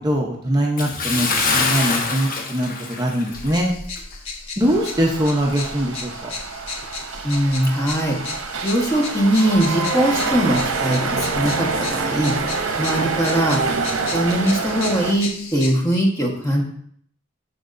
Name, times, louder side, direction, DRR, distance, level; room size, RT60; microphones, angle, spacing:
voice 1, 0.0-3.7 4.6-6.3, equal, 20° right, -1 dB, 0.8 m, -22 dB
Bathtub (filling or washing) / Splash splatter, 0.8-3.6 4.0-4.1 4.7-4.8, left 3 dB, 45° left, 1.0 m, -24 dB
sound 1, 3.3-15.7, left 4 dB, 80° left, 1.3 m, -34 dB
sound 2, 4.6-15.1, right 4 dB, 85° right, 0.7 m, -26 dB
voice 2, 7.2-8.3 8.6-12.4 12.8-13.6 14.1-16.6, right 1 dB, 15° left, -1 dB, 1.3 m, -21 dB
12.0 x 4.7 x 2.6 m, 0.62 s
head